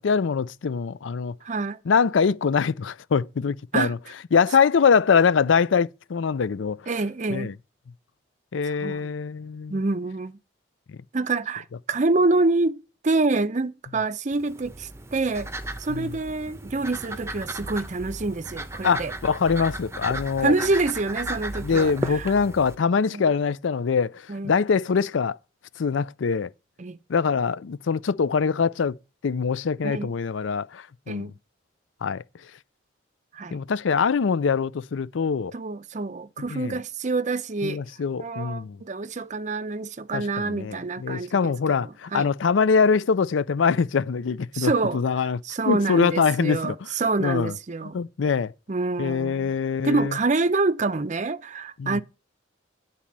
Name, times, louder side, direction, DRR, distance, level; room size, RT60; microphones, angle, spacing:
voice 1, 0.0-1.3 1.9-4.0 4.3-6.9 7.3-7.5 8.5-9.8 10.9-11.0 15.9-16.1 18.8-20.5 21.6-25.4 25.8-26.5 27.1-28.9 29.2-31.3 32.0-32.2 33.5-35.5 36.5-36.8 37.6-38.8 40.1-45.4 45.7-46.8 47.2-47.5 47.9-48.5 49.0-50.1 51.8-52.0, left 5 dB, 85° left, 0.5 m, -23 dB
voice 2, 1.4-1.8 3.7-3.9 6.9-7.5 8.7-9.1 9.7-10.4 11.1-12.8 13.0-15.5 15.8-19.1 20.4-22.3 23.1-23.2 24.3-24.5 26.8-27.0 29.8-30.1 31.1-31.3 33.3-33.6 35.5-37.8 38.2-41.5 41.8-42.3 44.5-45.0 45.4-48.0 48.7-49.6 49.8-52.0, right 3 dB, 40° right, 0.6 m, -26 dB
sound 1, 14.3-22.7, right 1 dB, 15° right, 0.8 m, -35 dB
10.0 x 4.2 x 7.3 m
head